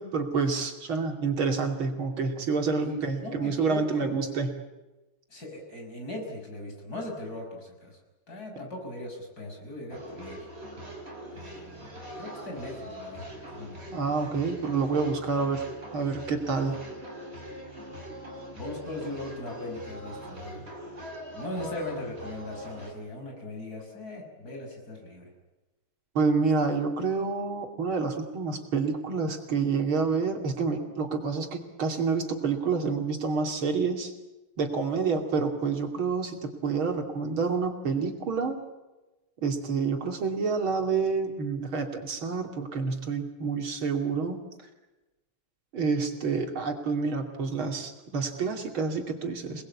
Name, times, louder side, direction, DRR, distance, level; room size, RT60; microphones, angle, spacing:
voice 1, 0.0-4.6 13.9-15.6 15.9-16.8 26.1-34.1 34.6-38.6 39.4-44.4 45.7-49.6, right 4 dB, 70° right, 4 dB, 3.4 m, -28 dB
voice 2, 2.8-4.2 5.3-8.0 8.3-10.5 11.3-14.0 18.6-20.7 21.3-25.3, left 1 dB, 45° left, 2 dB, 6.7 m, -39 dB
sound 1, 9.9-22.9, equal, 25° right, 5.5 m, -42 dB
28.0 x 20.0 x 8.5 m, 1.1 s
omnidirectional pair, 2.4 m